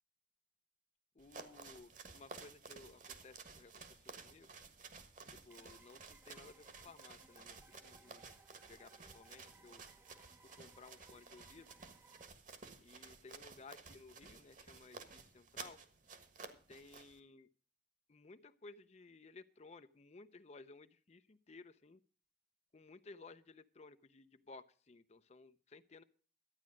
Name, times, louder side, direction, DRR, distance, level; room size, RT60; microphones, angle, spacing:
voice 1, 1.2-4.5 5.4-8.2 8.7-9.8 10.6-11.7 12.8-15.8 16.7-17.5 18.1-22.0 22.7-26.0, left 3 dB, 35° left, 11 dB, 0.5 m, -58 dB
sound 1, 1.2-17.2, right 4 dB, 45° right, 1.4 m, -54 dB
sound 2, 5.5-12.3, right 2 dB, 15° right, 0.6 m, -66 dB
12.5 x 9.5 x 6.2 m, 0.42 s
head